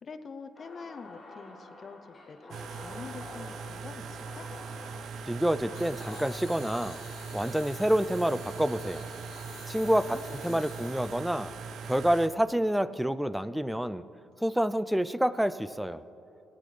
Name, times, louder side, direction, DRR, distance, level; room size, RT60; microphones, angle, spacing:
voice 1, 0.0-4.5 9.9-10.7, left 5 dB, 45° left, 9 dB, 0.7 m, -46 dB
sound 1, 0.5-8.7, left 2 dB, 15° left, 3.1 m, -49 dB
sound 2, 2.5-12.3, right 5 dB, 65° right, 0.6 m, -41 dB
voice 2, 5.3-7.0 7.3-9.1 9.7-11.5 11.8-14.0 14.4-16.0, equal, 5° right, 16 dB, 0.4 m, -28 dB
sound 3, 5.7-11.5, left 8 dB, 70° left, 0.9 m, -52 dB
18.5 x 10.0 x 3.3 m, 2.9 s
cardioid pair, 90°, 0 cm